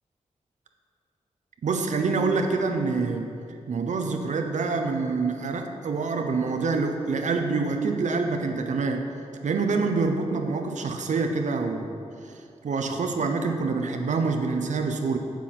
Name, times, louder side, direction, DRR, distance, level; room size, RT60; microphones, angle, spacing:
voice 1, 1.6-3.3 3.7-9.0 9.4-11.9 12.6-15.2, right 4 dB, 75° right, 4 dB, 0.8 m, -26 dB
8.2 x 6.1 x 7.7 m, 2.5 s
wide cardioid pair, 135°, 13 cm